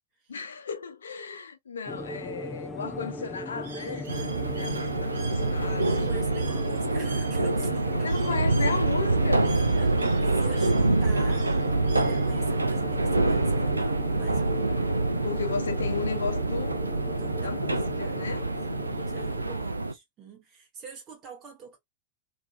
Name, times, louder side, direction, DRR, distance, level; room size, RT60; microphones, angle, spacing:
voice 1, 0.3-4.1 4.5-6.2 8.0-9.6 10.3-11.4 15.2-16.8 17.4-18.4, left 5 dB, 70° left, 0.7 m, -35 dB
sound 1, 1.9-19.7, left 1 dB, 15° left, 0.6 m, -38 dB
Bird, 3.6-12.6, right 5 dB, 65° right, 0.8 m, -48 dB
sound 2, 4.1-19.9, right 2 dB, 80° right, 0.3 m, -26 dB
voice 2, 5.9-8.6 9.7-11.4 11.9-14.9 17.2-21.8, right 5 dB, 30° right, 0.9 m, -45 dB
2.8 x 2.6 x 2.2 m
figure-of-eight pair, 90°, 0 cm